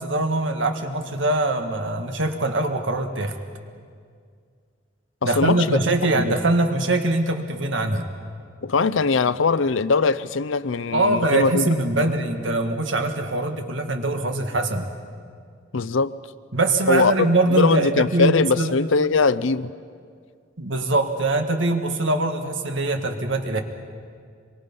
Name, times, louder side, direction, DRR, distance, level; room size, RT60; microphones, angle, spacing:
voice 1, 0.0-3.4 5.2-8.1 10.9-14.9 16.5-18.8 20.6-23.6, right 2 dB, 75° right, 1.8 m, -23 dB
voice 2, 5.2-5.8 6.1-6.4 8.6-11.7 12.0-12.1 15.7-16.2 16.9-19.7, left 4 dB, 85° left, 0.6 m, -21 dB
26.5 x 23.0 x 5.5 m
head